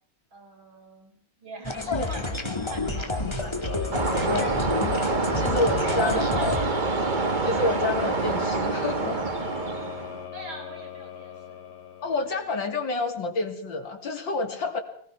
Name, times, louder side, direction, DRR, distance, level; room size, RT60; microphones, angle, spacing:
voice 1, 0.3-4.9 5.8-6.8 10.3-11.7 12.0-12.6, right 2 dB, 85° right, 4 dB, 4.7 m, -43 dB
sound 1, 1.6-6.7, left 2 dB, 15° left, 1.7 m, -30 dB
sound 2, 3.7-12.6, left 6 dB, 50° left, 2.1 m, -37 dB
sound 3, 3.9-10.3, right 3 dB, 25° right, 1.3 m, -27 dB
voice 2, 5.4-6.4 7.4-9.2 12.0-14.8, left 3 dB, 70° left, 5 dB, 3.7 m, -29 dB
24.0 x 19.5 x 6.2 m, 0.64 s
omnidirectional pair, 2.1 m